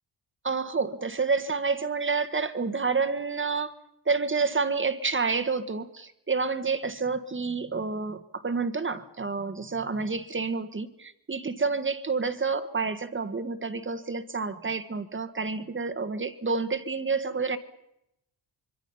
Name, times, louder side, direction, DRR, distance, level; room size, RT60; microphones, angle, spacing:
voice 1, 0.4-3.7 4.1-17.6, right 4 dB, 25° right, 10 dB, 1.6 m, -29 dB
25.5 x 24.5 x 5.6 m, 0.82 s
cardioid pair, 125°, 46 cm